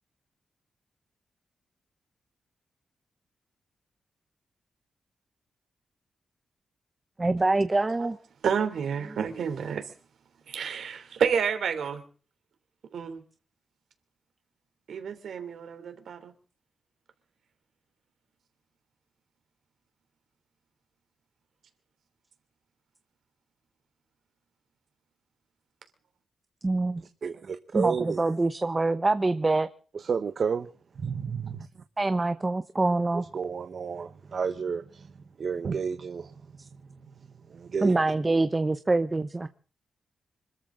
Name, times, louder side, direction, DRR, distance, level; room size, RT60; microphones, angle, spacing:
voice 1, 7.2-8.2 26.6-27.0 27.7-29.7 32.0-33.3 37.8-39.5, right 2 dB, 20° right, 0.8 m, -25 dB
voice 2, 8.4-9.8 10.5-12.0 12.9-13.2 14.9-16.3, right 7 dB, 75° right, 3.2 m, -29 dB
voice 3, 27.2-28.2 29.9-30.7 31.0-31.7 33.3-35.1 35.4-36.3 37.5-37.9, right 6 dB, 50° right, 1.1 m, -31 dB
26.0 x 14.0 x 3.9 m
wide cardioid pair, 130°, 0 cm